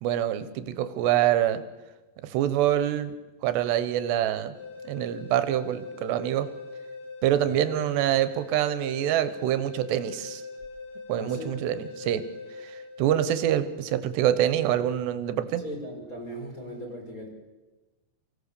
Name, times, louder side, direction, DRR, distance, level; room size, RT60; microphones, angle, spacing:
voice 1, 0.0-1.6 2.2-3.1 3.4-4.5 4.8-6.5 7.2-10.4 11.1-12.2 12.6-15.6, right 11 dB, 85° right, 12 dB, 3.2 m, -25 dB
sound 1, 4.5-13.5, left 3 dB, 65° left, 9.5 m, -42 dB
voice 2, 11.2-11.6 15.6-17.3, equal, 20° left, 2 dB, 3.9 m, -38 dB
24.5 x 17.0 x 6.8 m, 1.2 s
omnidirectional pair, 4.9 m